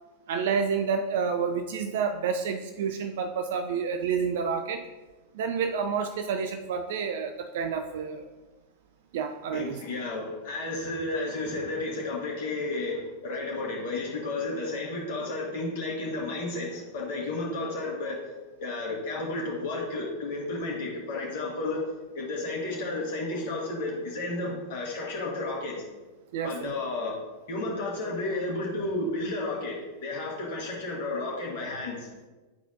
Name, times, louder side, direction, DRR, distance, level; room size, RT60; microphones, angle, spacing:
voice 1, 0.3-4.8 5.3-8.3 9.1-9.8 26.3-26.7, right 6 dB, 55° right, 7 dB, 0.4 m, -29 dB
voice 2, 9.5-18.2 18.6-21.8 22.1-25.8 26.4-27.2 27.5-32.1, left 2 dB, 50° left, -3 dB, 2.0 m, -32 dB
11.0 x 4.1 x 2.6 m, 1.2 s
figure-of-eight pair, 90°, 0 cm